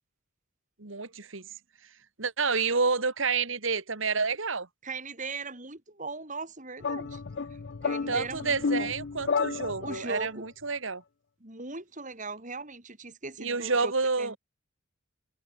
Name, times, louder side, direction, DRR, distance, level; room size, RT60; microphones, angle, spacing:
voice 1, 0.8-1.5 2.2-4.7 8.1-11.0 13.4-14.4, right 4 dB, 70° right, 2.1 m, -29 dB
voice 2, 4.8-7.2 7.5-8.9 9.8-10.5 11.4-13.9 14.2-14.4, right 3 dB, 40° right, 4.7 m, -39 dB
sound 1, 6.8-10.3, left 5 dB, 55° left, 0.5 m, -31 dB
head